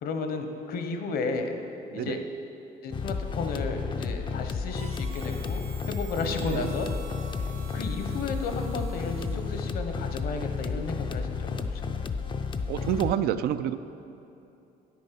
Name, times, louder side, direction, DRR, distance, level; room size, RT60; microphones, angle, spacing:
voice 1, 0.0-1.6 1.9-2.2 2.8-6.9 7.7-12.1, left 3 dB, 65° left, 6 dB, 1.0 m, -33 dB
voice 2, 1.9-2.2 6.4-6.7 12.7-13.8, right 10 dB, 65° right, 12 dB, 0.4 m, -28 dB
sound 1, 2.9-13.1, left 5 dB, 30° left, 0.5 m, -32 dB
Harmonica, 4.7-9.8, right 6 dB, 80° right, 1.0 m, -48 dB
8.6 x 8.4 x 5.9 m, 2.8 s
cardioid pair, 110°, 17 cm